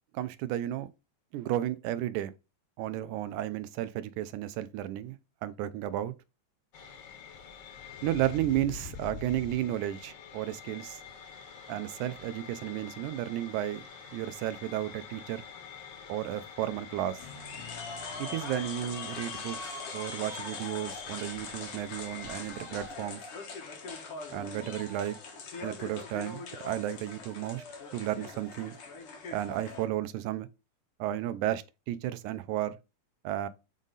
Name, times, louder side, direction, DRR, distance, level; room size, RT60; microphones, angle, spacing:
voice 1, 0.1-0.9 1.3-2.3 2.8-5.2 5.4-6.1 8.0-11.0 11.7-13.8 14.1-15.4 16.1-17.2 18.2-23.2 24.3-25.2 25.6-27.6 27.9-28.8 29.3-30.5 31.0-32.8 33.2-33.5, right 13 dB, 85° right, 2.0 m, -33 dB
sound 1, 6.7-23.0, left 6 dB, 85° left, 1.0 m, -47 dB
sound 2, 17.2-29.9, left 4 dB, 55° left, 2.0 m, -42 dB
6.3 x 3.8 x 4.0 m
omnidirectional pair, 3.4 m